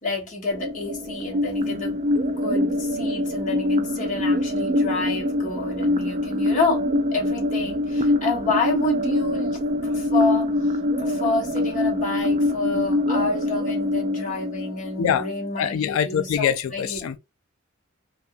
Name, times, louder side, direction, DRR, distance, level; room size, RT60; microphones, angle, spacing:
voice 1, 0.0-2.0 2.4-6.9 7.1-17.2, left 3 dB, 40° left, 1.1 m, -29 dB
sound 1, 0.5-15.5, left 1 dB, 35° right, 0.4 m, -24 dB
voice 2, 15.6-17.2, left 8 dB, 80° left, 0.3 m, -24 dB
2.6 x 2.4 x 2.6 m
head